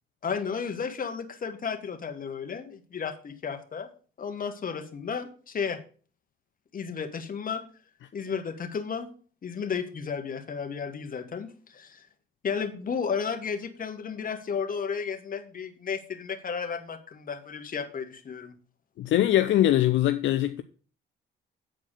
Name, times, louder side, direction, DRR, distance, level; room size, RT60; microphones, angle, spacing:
voice 1, 0.2-3.9 4.2-5.8 6.7-7.6 8.1-9.1 9.4-12.1 12.4-18.6, left 6 dB, 45° left, 1.6 m, -33 dB
voice 2, 19.0-20.6, left 13 dB, 70° left, 0.6 m, -22 dB
9.0 x 4.6 x 6.4 m
cardioid pair, 90°, 20 cm